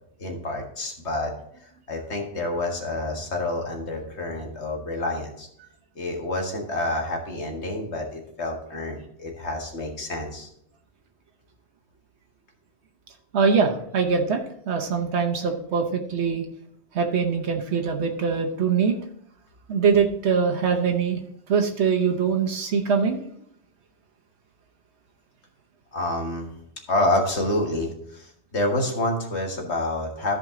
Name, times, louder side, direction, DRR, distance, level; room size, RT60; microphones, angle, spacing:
voice 1, 0.2-1.3 1.6-5.5 6.0-10.5 25.9-26.5 26.9-30.4, left 1 dB, 90° left, 1 dB, 1.9 m, -28 dB
voice 2, 13.3-16.5 16.9-18.9 19.7-21.2 21.5-23.2, right 6 dB, 85° right, 2 dB, 1.2 m, -23 dB
14.0 x 5.1 x 3.7 m, 0.71 s
omnidirectional pair, 1.1 m